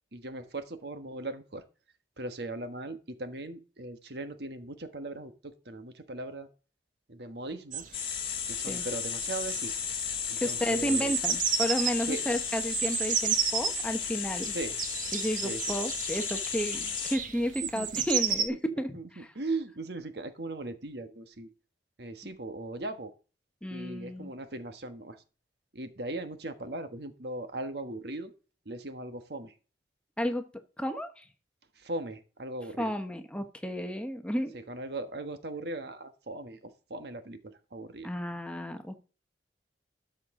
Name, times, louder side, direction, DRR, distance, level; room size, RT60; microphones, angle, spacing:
voice 1, 0.1-1.6 2.2-6.5 7.1-8.0 8.5-9.7 10.3-11.2 12.0-12.2 14.5-14.8 15.4-15.7 17.6-18.0 18.9-21.5 22.0-23.1 23.7-25.2 25.7-28.3 28.6-29.5 31.8-32.9 34.5-38.1, right 2 dB, 65° right, 9 dB, 1.3 m, -39 dB
sound 1, 7.7-18.5, right 8 dB, 45° right, 1.2 m, -33 dB
sound 2, 7.9-17.2, left 7 dB, 30° left, 2.2 m, -34 dB
voice 2, 10.4-14.5 15.1-19.3 23.6-24.3 30.2-30.4 30.8-31.2 32.8-34.6 38.0-39.0, equal, 5° left, 7 dB, 1.0 m, -32 dB
13.0 x 6.4 x 3.7 m, 0.35 s
head